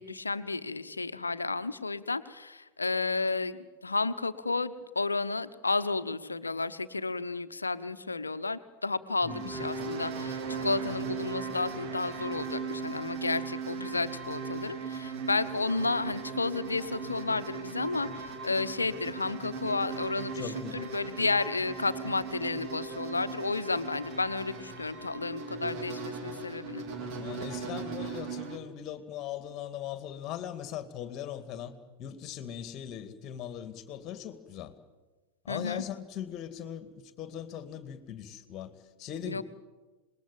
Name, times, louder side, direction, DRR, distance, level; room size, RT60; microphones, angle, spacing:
voice 1, 0.0-26.8 35.5-35.8 39.3-39.4, left 3 dB, 80° left, 1.0 m, -32 dB
voice 2, 9.2-9.6 20.3-20.8 27.1-31.7 32.0-34.7 35.4-36.9 37.2-38.7 39.0-39.4, left 10 dB, 35° left, 2.3 m, -39 dB
sound 1, 9.3-28.6, right 5 dB, 40° right, 3.2 m, -38 dB
27.0 x 20.5 x 9.0 m
figure-of-eight pair, 90°, 0 cm